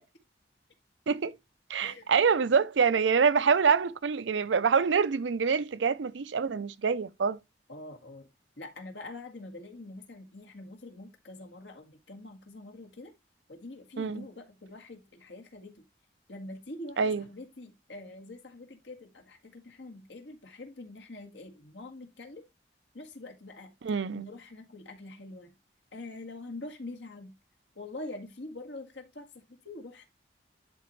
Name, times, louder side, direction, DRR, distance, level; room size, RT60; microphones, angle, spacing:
voice 1, 1.7-7.4 14.0-14.3 17.0-17.2 23.8-24.3, right 6 dB, 85° right, 0.5 m, -26 dB
voice 2, 7.7-8.3 8.6-13.1 13.5-15.8 16.3-22.4 22.9-23.7 24.1-25.5 25.9-27.3 27.7-30.1, left 2 dB, 80° left, 1.8 m, -45 dB
11.0 x 4.2 x 3.1 m
head